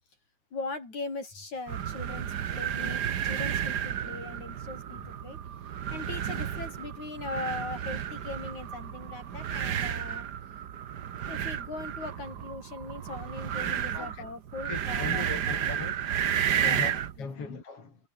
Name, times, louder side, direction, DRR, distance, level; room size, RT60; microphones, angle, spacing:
voice 1, 0.5-5.4 5.9-10.3 11.3-15.7 16.6-17.5, left 3 dB, 65° left, 9.0 m, -40 dB
sound 1, 1.7-17.2, right 9 dB, 90° right, 0.9 m, -32 dB
voice 2, 13.9-14.3 14.6-16.2 16.6-18.0, left 4 dB, 45° left, 5.2 m, -39 dB
omnidirectional pair, 3.6 m